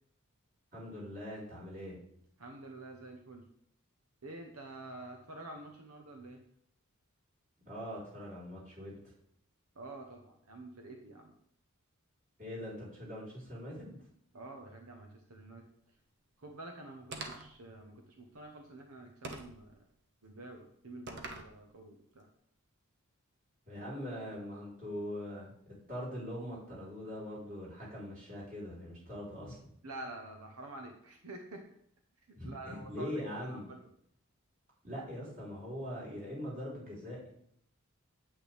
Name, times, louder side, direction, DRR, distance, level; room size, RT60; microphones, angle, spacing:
voice 1, 0.7-2.0 7.6-9.0 12.4-14.0 23.7-25.5 25.9-29.6 32.3-33.7 34.8-37.3, equal, 40° right, -6 dB, 4.4 m, -42 dB
voice 2, 2.4-3.4 4.2-6.4 9.7-11.3 14.3-15.6 16.4-19.8 20.2-22.3 29.8-31.6 32.3-33.1 33.4-33.8, right 2 dB, 85° right, 3 dB, 1.1 m, -48 dB
sound 1, 17.1-17.6 19.2-19.6 21.1-21.5, right 2 dB, 55° right, 1.1 m, -43 dB
8.9 x 8.7 x 3.5 m, 0.68 s
head